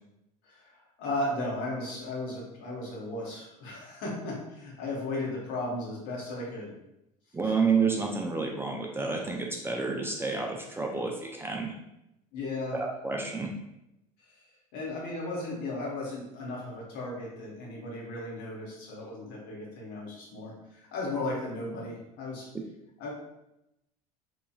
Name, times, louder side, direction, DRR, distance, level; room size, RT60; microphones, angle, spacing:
voice 1, 0.4-6.7 7.4-7.5 12.3-12.8 14.3-14.4 14.7-22.5 23.0-23.1, left 2 dB, 65° left, -3 dB, 1.0 m, -35 dB
voice 2, 7.3-11.8 12.7-13.5, right 4 dB, 10° right, 0 dB, 0.4 m, -29 dB
2.9 x 2.3 x 2.3 m, 0.87 s
hypercardioid pair, 75°, 19 cm